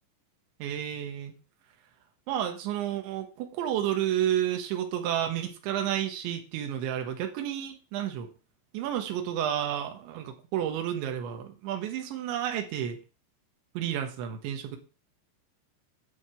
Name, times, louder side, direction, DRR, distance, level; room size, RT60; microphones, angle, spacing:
voice 1, 0.6-1.4 2.3-8.3 8.7-13.0 13.8-14.8, right 10 dB, 85° right, 4 dB, 3.8 m, -31 dB
8.9 x 6.2 x 8.4 m, 0.34 s
omnidirectional pair, 5.1 m